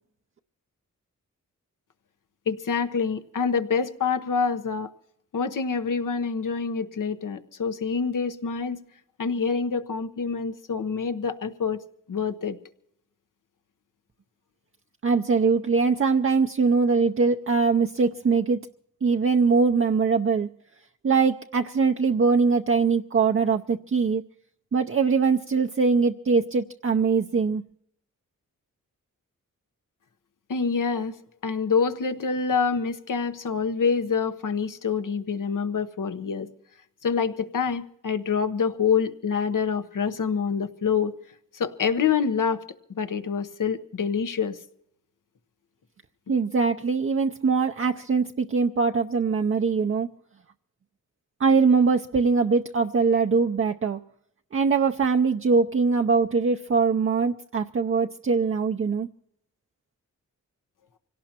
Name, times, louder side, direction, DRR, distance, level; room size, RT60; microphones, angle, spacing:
voice 1, 2.5-4.9 5.3-8.8 9.2-11.8 12.1-12.6 30.5-31.2 31.4-36.5 37.0-41.1 41.5-42.6 43.0-44.6, left 5 dB, 70° left, 9 dB, 1.1 m, -26 dB
voice 2, 15.0-18.6 19.0-20.5 21.0-24.2 24.7-27.6 46.3-50.1 51.4-54.0 54.5-59.1, right 5 dB, 40° right, 5 dB, 0.6 m, -22 dB
25.0 x 17.5 x 2.9 m, 0.75 s
cardioid pair, 50°, 33 cm